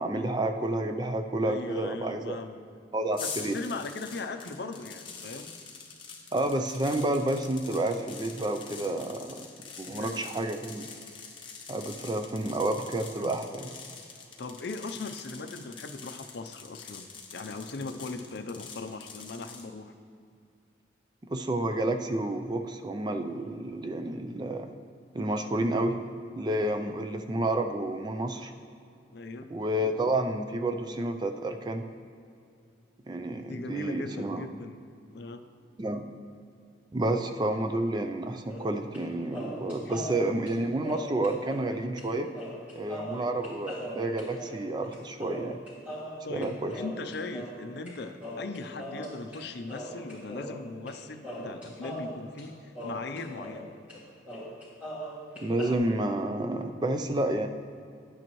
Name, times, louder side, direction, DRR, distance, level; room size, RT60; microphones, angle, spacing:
voice 1, 0.0-2.4 2.9-3.6 6.3-9.4 9.8-10.9 11.7-13.7 21.3-24.7 25.1-25.9 26.4-28.5 29.5-31.8 33.1-34.5 35.8-36.0 36.9-42.3 42.8-45.6 46.3-46.7 55.4-57.5, right 1 dB, 20° right, 6 dB, 0.4 m, -30 dB
voice 2, 1.4-2.6 3.2-5.5 9.9-10.5 13.2-13.4 14.4-19.9 29.1-29.5 33.4-34.8 35.1-35.5 39.9-40.1 43.1-43.3 46.2-53.7, left 3 dB, 60° left, 8 dB, 0.5 m, -39 dB
sound 1, 3.1-19.7, left 5 dB, 25° left, 0.9 m, -45 dB
sound 2, 38.5-39.0 39.3-41.7 42.0-42.1 42.3-47.9 48.2-49.4 49.7-51.0 51.2-53.6 53.9-54.0 54.3-55.8, equal, 5° right, 2.2 m, -40 dB
10.5 x 8.9 x 3.0 m, 2.5 s
head